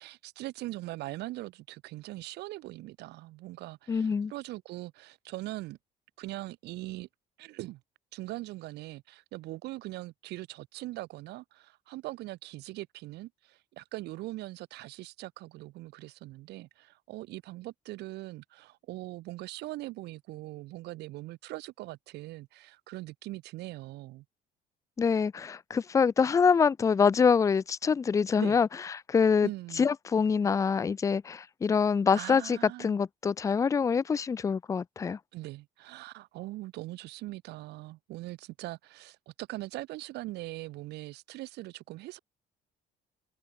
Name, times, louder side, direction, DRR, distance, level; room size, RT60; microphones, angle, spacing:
voice 1, 0.0-5.8 6.2-7.1 7.4-7.8 8.1-24.2 28.4-28.6 29.4-29.9 32.1-32.9 35.3-42.2, right 18 dB, 80° right, 1.7 m, -41 dB
voice 2, 3.9-4.3 25.0-28.7 29.1-29.5 29.8-35.2, left 6 dB, 20° left, 0.3 m, -25 dB
cardioid pair, 110°, 17 cm